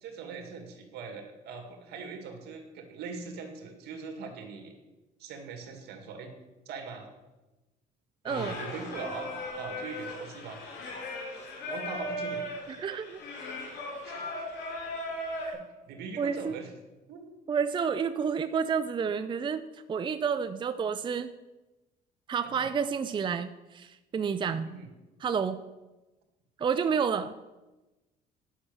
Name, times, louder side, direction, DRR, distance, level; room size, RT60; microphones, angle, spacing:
voice 1, 0.0-4.7 5.2-6.3 6.7-7.1 8.3-10.6 11.7-12.5 14.0-14.5 15.5-16.7 17.1-17.3 22.4-22.7 24.7-24.9, right 5 dB, 75° right, 4 dB, 2.1 m, -41 dB
voice 2, 8.2-8.6 12.7-13.2 16.2-16.5 17.5-21.3 22.3-24.7 25.2-25.6 26.6-27.4, right 6 dB, 30° right, 10 dB, 0.5 m, -30 dB
Singing, 8.3-15.5, left 1 dB, 85° left, 3.4 m, -38 dB
10.0 x 6.2 x 6.8 m, 1.1 s
cardioid pair, 110°, 17 cm